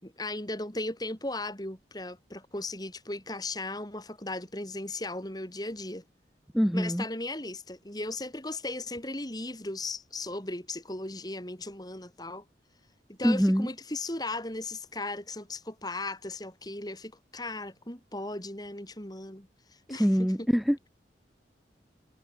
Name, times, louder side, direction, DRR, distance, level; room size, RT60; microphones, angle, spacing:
voice 1, 0.0-6.0 6.7-12.4 13.1-19.5 19.9-20.5, left 2 dB, 20° left, 4.6 m, -37 dB
voice 2, 6.5-7.0 13.2-13.7 20.0-20.9, equal, ahead, 0.5 m, -24 dB
head